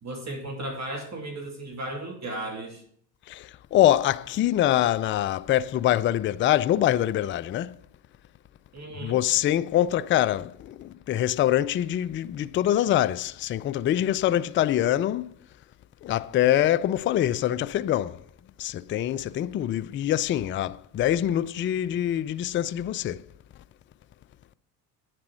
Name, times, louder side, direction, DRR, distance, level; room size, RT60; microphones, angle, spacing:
voice 1, 0.0-2.8 8.7-9.2, right 1 dB, 35° right, 2.7 m, -35 dB
voice 2, 3.3-7.8 9.0-15.3 16.0-18.2 18.6-23.2, left 12 dB, 30° left, 0.3 m, -24 dB
9.7 x 7.5 x 6.2 m
hypercardioid pair, 75°, 48 cm